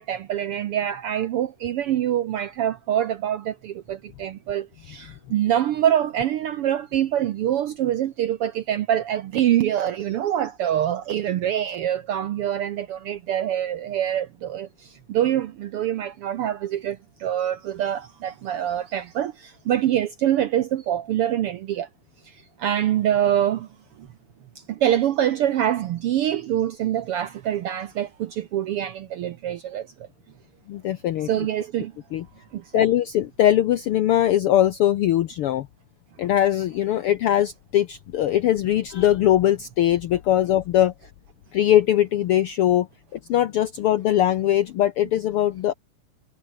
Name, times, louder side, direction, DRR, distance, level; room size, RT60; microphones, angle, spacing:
voice 1, 0.0-21.9 22.6-23.7 24.7-29.9 31.2-31.9 32.5-32.8, right 11 dB, 70° right, 1.3 m, -25 dB
voice 2, 30.7-31.3 32.1-32.2 32.7-35.7 36.2-40.9 41.5-42.9 43.1-45.7, left 12 dB, 75° left, 1.3 m, -21 dB
omnidirectional pair, 3.5 m